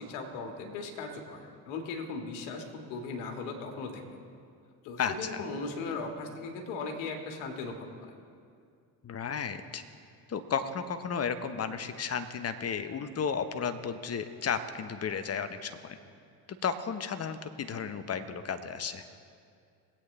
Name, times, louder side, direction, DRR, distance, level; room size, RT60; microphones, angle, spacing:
voice 1, 0.0-4.0 4.8-8.1, left 4 dB, 70° left, 3 dB, 2.0 m, -38 dB
voice 2, 5.0-5.4 9.0-9.8 10.3-16.0 16.5-19.0, left 6 dB, 30° left, 9 dB, 1.0 m, -33 dB
21.0 x 8.6 x 3.3 m, 2.3 s
hypercardioid pair, 65°, 50 cm